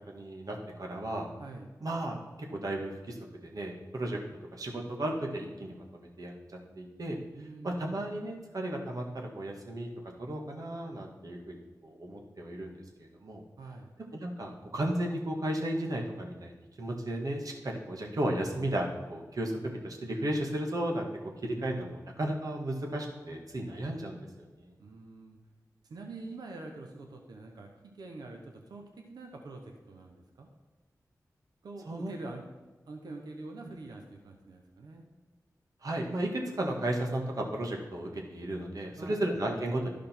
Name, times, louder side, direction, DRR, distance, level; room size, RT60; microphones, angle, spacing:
voice 1, 0.1-1.3 1.8-2.2 2.5-3.2 3.4-4.2 4.5-6.3 6.8-7.2 7.6-9.9 10.2-11.6 11.8-13.4 14.1-21.1 21.4-24.2 24.7-24.8 31.9-32.1 35.8-39.9, right 1 dB, 65° right, 1 dB, 1.6 m, -34 dB
voice 2, 1.4-1.7 7.3-8.0 13.6-13.9 24.8-25.4 25.8-30.5 31.6-32.4 32.8-35.1 39.0-39.2, right 2 dB, 90° right, 3 dB, 0.9 m, -45 dB
12.0 x 5.1 x 4.4 m, 1.3 s
cardioid pair, 45°, 7 cm